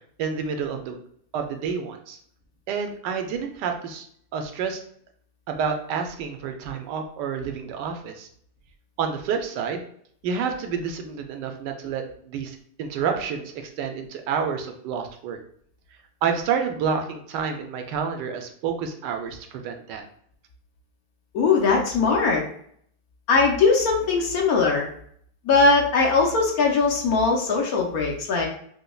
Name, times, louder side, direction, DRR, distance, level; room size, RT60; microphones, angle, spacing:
voice 1, 0.2-1.0 1.3-2.2 2.7-4.1 4.3-4.8 5.5-8.3 9.0-9.9 10.2-15.4 16.2-20.0, right 6 dB, 85° right, 5 dB, 1.2 m, -29 dB
voice 2, 21.3-22.4 23.3-24.9 25.4-28.5, left 4 dB, 65° left, 0 dB, 1.1 m, -20 dB
4.9 x 2.2 x 2.2 m, 0.64 s
omnidirectional pair, 1.8 m